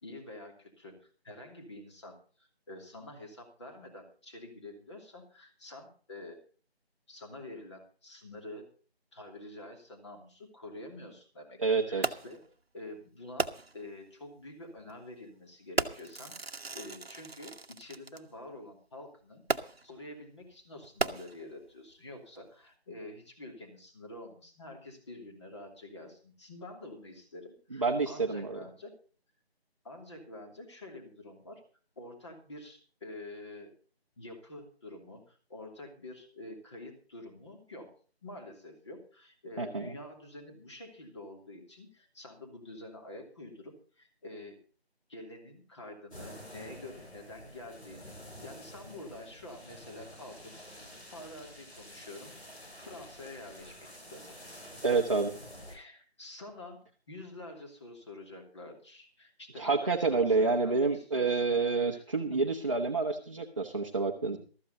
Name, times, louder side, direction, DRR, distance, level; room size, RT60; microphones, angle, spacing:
voice 1, 0.0-6.4 7.1-8.7 9.1-11.6 11.9-12.4 12.7-28.9 29.8-31.6 32.0-33.7 34.2-44.6 45.1-48.2 48.4-50.5 51.1-52.4 52.8-54.4 55.7-61.5 61.9-62.0 62.3-62.4 64.3-64.4, left 2 dB, 25° left, 2 dB, 2.9 m, -47 dB
voice 2, 11.6-12.0 27.7-28.6 39.6-39.9 54.8-55.3 59.6-64.4, right 4 dB, 30° right, 0 dB, 1.1 m, -28 dB
Fireworks, 12.0-12.5 13.4-13.9 14.8-14.9 15.8-18.2 19.5-20.0 20.8-21.7 22.4-22.5, right 3 dB, 70° right, 1.2 m, -35 dB
sound 1, 46.1-55.8, equal, 90° left, 7.3 m, -49 dB
14.0 x 13.5 x 4.1 m, 0.38 s
figure-of-eight pair, 170°, 32 cm